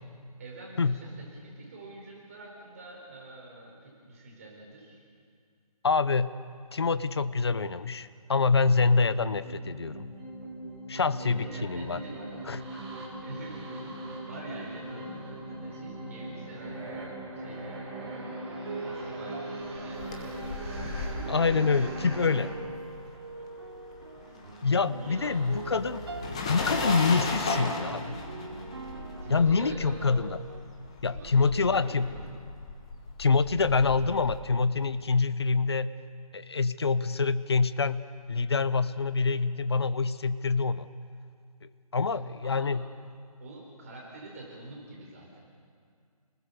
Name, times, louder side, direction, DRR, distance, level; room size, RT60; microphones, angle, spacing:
voice 1, 0.4-5.0 11.1-17.8 18.8-22.1 23.4-23.5 24.1-24.5 24.9-25.7 29.2-30.2 31.1-32.2 42.1-42.7 43.4-45.4, right 2 dB, 25° right, -2 dB, 4.1 m, -46 dB
voice 2, 5.8-6.3 6.7-10.1 10.9-12.0 12.5-12.6 21.3-22.5 24.6-26.0 26.5-28.2 29.3-30.4 31.0-32.1 33.2-35.9 36.3-40.9 41.9-42.8, left 4 dB, 45° left, 14 dB, 0.9 m, -26 dB
sound 1, 9.2-22.5, right 1 dB, 5° right, 2.0 m, -40 dB
sound 2, 18.0-30.6, right 3 dB, 45° right, 3.0 m, -42 dB
sound 3, 19.7-23.4 23.7-34.4, left 3 dB, 10° left, 0.9 m, -36 dB
29.5 x 20.5 x 7.0 m, 2.2 s
hypercardioid pair, 175°, 19 cm